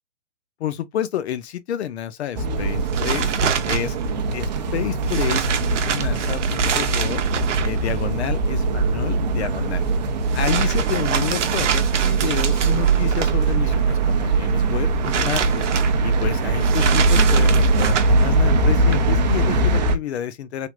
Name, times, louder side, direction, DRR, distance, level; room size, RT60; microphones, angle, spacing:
voice 1, 0.6-3.3 3.6-4.0 4.3-7.2 7.6-9.8 10.3-15.6 16.0-20.7, left 10 dB, 60° left, 0.5 m, -29 dB
sound 1, 2.4-20.0, right 3 dB, 35° right, 0.4 m, -21 dB
sound 2, 2.5-19.8, right 6 dB, 70° right, 0.7 m, -28 dB
3.3 x 2.5 x 2.3 m
hypercardioid pair, 130°, 38 cm